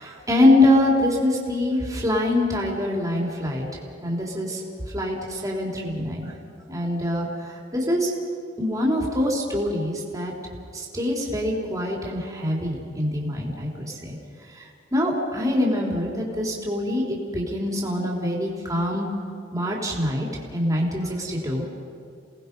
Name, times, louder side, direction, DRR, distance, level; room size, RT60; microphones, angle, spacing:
voice 1, 0.0-3.7 4.0-4.6 4.9-6.3 6.7-8.1 8.6-10.3 10.7-14.2 14.5-14.6 14.9-19.1 19.5-21.7, left 1 dB, 20° right, -2 dB, 3.6 m, -24 dB
29.0 x 19.0 x 5.4 m, 2.4 s
head